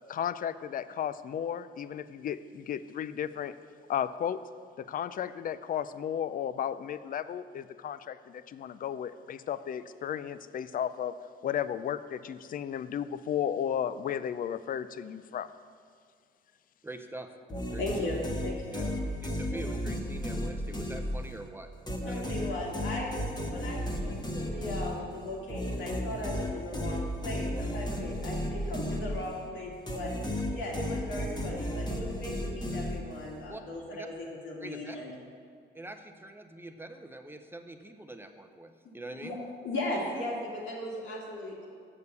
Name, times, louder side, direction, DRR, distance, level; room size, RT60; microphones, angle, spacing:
voice 1, 0.1-3.5 3.9-4.4 4.8-11.2 11.4-15.5, left 9 dB, 45° left, 14 dB, 0.4 m, -34 dB
voice 2, 16.8-17.3 17.7-17.8 18.7-18.9 19.2-21.7 22.0-22.3 33.5-33.6 33.9-34.1 34.6-35.0 35.7-39.4, right 2 dB, 10° right, 6 dB, 0.6 m, -44 dB
sound 1, 17.5-21.5 21.9-29.5 29.9-33.3, equal, 20° left, 1.3 m, -34 dB
voice 3, 17.8-18.9 22.1-23.1 23.5-35.1 39.2-39.4 39.6-41.7, left 1 dB, 75° left, -3 dB, 2.3 m, -37 dB
6.9 x 6.5 x 6.9 m, 2.2 s
cardioid pair, 90°, 20 cm